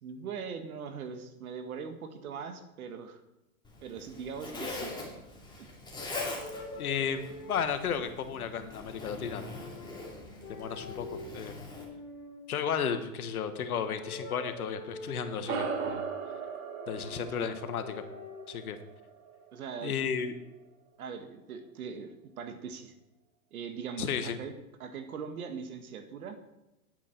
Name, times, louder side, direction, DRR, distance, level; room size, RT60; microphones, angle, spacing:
voice 1, 0.0-3.2 3.8-5.0 5.6-5.7 17.1-17.5 19.5-19.9 21.0-22.9 23.5-24.5 24.8-26.4, right 6 dB, 80° right, 8 dB, 1.6 m, -41 dB
Zipper (clothing), 3.6-11.8, left 2 dB, 10° left, 2.8 m, -42 dB
sound 1, 6.2-8.1 9.4-10.1 10.4-11.3 11.7-12.9 13.9-15.7 16.8-18.5, left 2 dB, 40° left, 3.1 m, -45 dB
voice 2, 6.8-9.4 10.5-11.1 11.3-11.7 12.5-16.0 16.9-18.0 18.5-18.8 19.8-20.3 24.0-24.4, left 7 dB, 85° left, 9 dB, 1.3 m, -33 dB
sound 2, 15.4-20.2, right 5 dB, 65° right, 2.1 m, -38 dB
10.5 x 8.7 x 4.5 m, 0.96 s
hypercardioid pair, 115°, 43 cm